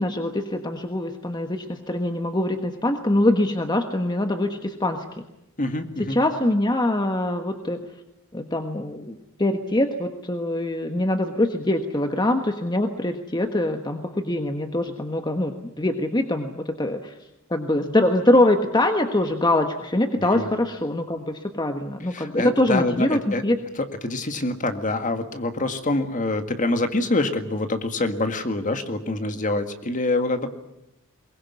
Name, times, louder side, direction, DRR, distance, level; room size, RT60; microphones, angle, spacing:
voice 1, 0.0-5.2 6.1-7.8 8.3-17.1 17.5-23.6, left 1 dB, 20° left, 6 dB, 1.4 m, -23 dB
voice 2, 5.6-6.2 20.3-20.5 22.1-23.4 24.0-30.5, left 2 dB, 35° left, 7 dB, 1.9 m, -25 dB
23.0 x 20.5 x 9.5 m, 0.88 s
head